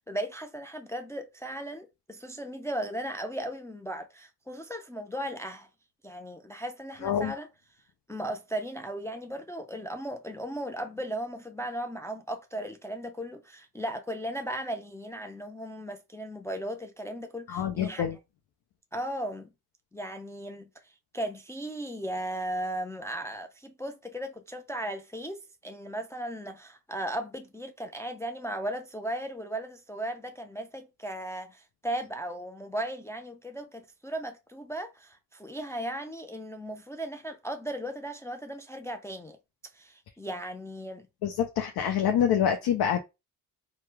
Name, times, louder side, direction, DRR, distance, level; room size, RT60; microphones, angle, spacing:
voice 1, 0.0-5.7 6.0-7.5 8.1-18.1 18.9-19.5 19.9-20.7 21.1-39.4 39.7-41.1, right 1 dB, 5° left, 0.4 m, -36 dB
voice 2, 7.0-7.3 17.5-18.2 41.2-43.0, left 9 dB, 70° left, 0.6 m, -26 dB
2.9 x 2.2 x 3.3 m
supercardioid pair, 50°, 40 cm